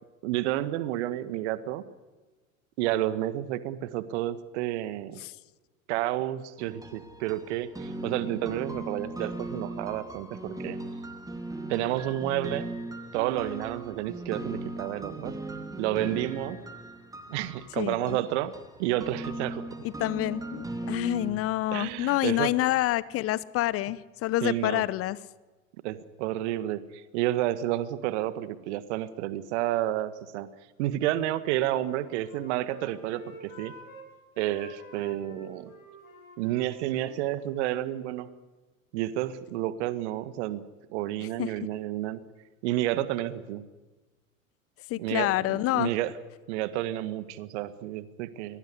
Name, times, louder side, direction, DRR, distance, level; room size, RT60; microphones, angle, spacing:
voice 1, 0.2-1.8 2.8-5.2 5.9-10.8 11.7-12.7 13.1-15.4 15.8-16.6 17.3-18.5 18.8-19.7 21.7-22.5 24.4-24.8 25.8-30.5 30.8-33.7 34.4-35.7 36.4-38.3 38.9-40.6 40.9-42.2 42.6-43.6 45.0-46.1 46.5-48.6, right 14 dB, 55° right, 14 dB, 1.8 m, -30 dB
sound 1, 6.6-21.3, right 2 dB, 10° right, 2.9 m, -38 dB
voice 2, 17.8-18.2 19.8-25.2 41.2-41.5 44.9-45.9, left 16 dB, 35° left, 20 dB, 0.8 m, -28 dB
Wind instrument woodwind instrument, 31.4-34.1 34.3-38.0, left 1 dB, 75° left, 5.3 m, -50 dB
23.5 x 19.0 x 9.9 m, 1.2 s
figure-of-eight pair, 80°, 42 cm